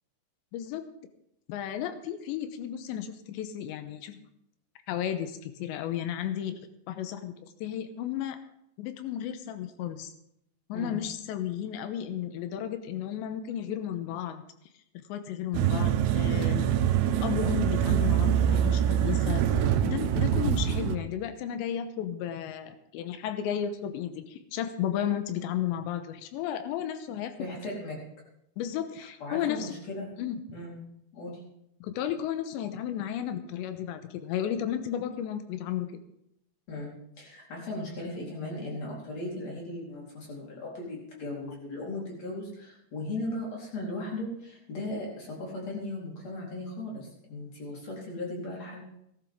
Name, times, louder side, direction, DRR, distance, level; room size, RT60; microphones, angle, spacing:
voice 1, 0.5-0.8 1.5-4.2 4.9-6.6 6.9-8.4 8.8-10.1 10.7-14.4 15.1-16.7 17.2-19.4 19.8-27.3 28.6-29.7 30.2-30.4 31.8-35.9, left 10 dB, 85° left, 9 dB, 3.2 m, -33 dB
sound 1, 15.5-21.0, right 10 dB, 80° right, 2.9 m, -25 dB
voice 2, 27.4-28.0 29.2-30.1 30.5-30.8 31.1-31.4 36.7-36.9 37.2-48.8, left 2 dB, 40° left, -3 dB, 4.9 m, -37 dB
18.0 x 13.5 x 3.7 m, 0.78 s
omnidirectional pair, 5.1 m